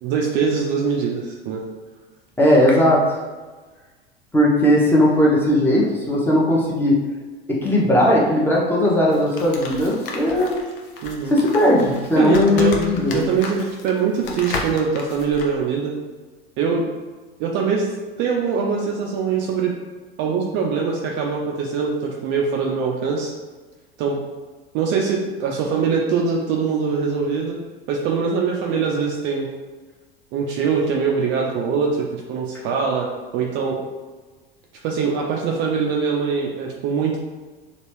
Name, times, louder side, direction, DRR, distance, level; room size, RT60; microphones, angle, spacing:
voice 1, 0.0-1.6 11.0-11.3 12.2-12.8 13.1-15.9 16.6-16.8 17.4-17.9 18.2-19.7 20.2-23.3 24.0-24.2 24.7-27.6 27.9-29.5 30.3-33.8 34.8-37.2, right 5 dB, 40° right, -1 dB, 0.5 m, -23 dB
voice 2, 2.4-3.0 4.3-7.0 7.5-10.5 11.3-13.2, left 1 dB, 5° left, -5 dB, 0.7 m, -17 dB
sound 1, 9.1-15.5, left 4 dB, 60° left, 0.6 m, -33 dB
2.9 x 2.5 x 3.2 m, 1.3 s
figure-of-eight pair, 80°, 31 cm